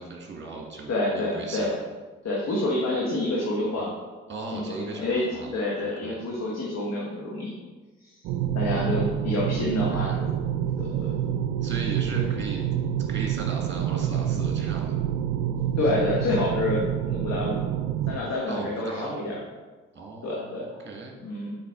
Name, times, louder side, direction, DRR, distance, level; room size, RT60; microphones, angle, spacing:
voice 1, 0.0-1.7 4.3-5.5 5.8-6.2 8.7-9.4 10.0-10.2 11.6-12.6 13.1-15.0 18.5-19.4 19.9-20.6 20.9-21.1, right 3 dB, 30° right, 0 dB, 1.9 m, -37 dB
voice 2, 0.9-1.7 2.2-3.9 4.5-5.3 5.5-7.5 8.5-10.3 10.8-11.3 15.8-17.7 18.1-19.4 20.2-20.7 21.2-21.6, left 2 dB, 50° left, -4 dB, 1.6 m, -28 dB
sound 1, 8.2-18.2, right 10 dB, 60° right, 0.5 m, -27 dB
6.8 x 5.2 x 3.8 m, 1.3 s
figure-of-eight pair, 45°, 35 cm